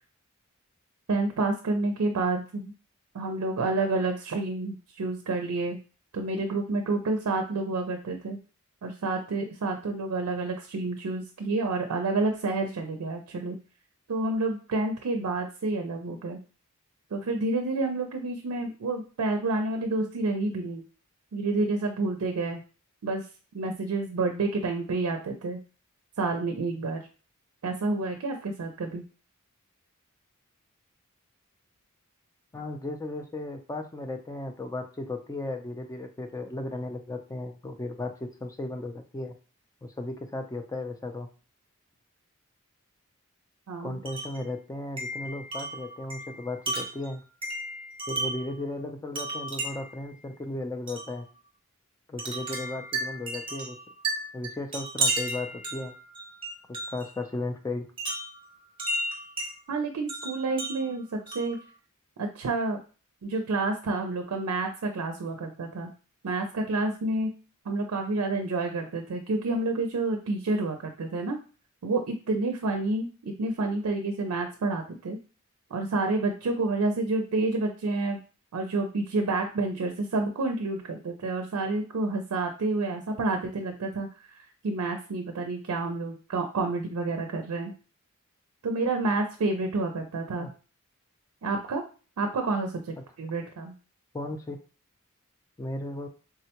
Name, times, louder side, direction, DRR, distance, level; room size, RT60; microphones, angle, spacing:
voice 1, 1.1-2.7 3.1-5.8 6.1-8.4 8.8-13.6 14.1-16.4 17.1-20.8 21.3-22.6 23.0-23.2 23.5-25.6 26.2-27.0 27.6-29.0 43.7-44.0 59.7-61.6 62.2-62.8 63.2-65.9 66.2-67.3 67.7-71.4 71.8-75.2 75.7-78.2 78.5-84.1 84.6-87.7 88.6-90.5 91.4-91.8 92.2-93.7, right 3 dB, 85° right, 4 dB, 0.4 m, -29 dB
voice 2, 32.5-39.3 39.8-41.3 43.8-47.2 48.1-51.3 52.1-53.8 54.3-55.9 56.7-57.8 68.8-68.9 90.4-90.5 94.1-94.6 95.6-96.1, left 2 dB, 15° left, 5 dB, 0.3 m, -35 dB
Wind chime, 44.0-44.4 45.0-48.5 49.1-50.0 50.9-51.1 52.2-57.1 58.0-59.5 60.1-61.6, right 2 dB, 25° right, 0.7 m, -33 dB
3.6 x 2.1 x 2.8 m, 0.36 s
head